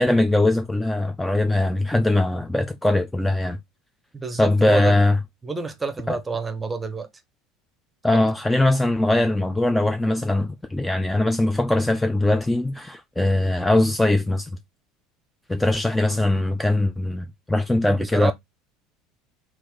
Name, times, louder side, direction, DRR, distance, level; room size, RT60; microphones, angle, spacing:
voice 1, 0.0-3.6 4.4-5.2 6.1-6.2 8.0-14.5 15.5-18.3, left 2 dB, 10° left, 0.4 m, -21 dB
voice 2, 4.1-5.0 5.4-7.1 8.1-8.3 18.0-18.3, right 4 dB, 20° right, 0.8 m, -28 dB
2.9 x 2.5 x 3.7 m
hypercardioid pair, 75°, 0 cm